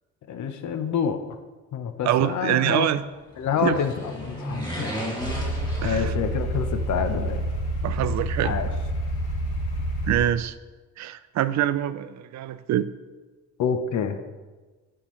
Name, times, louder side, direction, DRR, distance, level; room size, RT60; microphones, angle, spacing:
voice 1, 0.3-1.4 1.7-2.9 3.4-4.9 5.8-7.4 8.4-8.7 13.6-14.2, left 7 dB, 70° left, 9 dB, 0.8 m, -27 dB
voice 2, 2.0-3.0 3.6-3.8 5.8-6.1 7.8-8.5 10.1-10.5 11.0-12.9, right 12 dB, 65° right, 14 dB, 0.5 m, -24 dB
sound 1, 3.3-6.7 7.0-7.1, equal, 15° left, 2.8 m, -34 dB
sound 2, 5.2-10.2, right 1 dB, 85° left, 1.5 m, -28 dB
11.0 x 5.8 x 3.1 m, 1.3 s
cardioid pair, 90°, 30 cm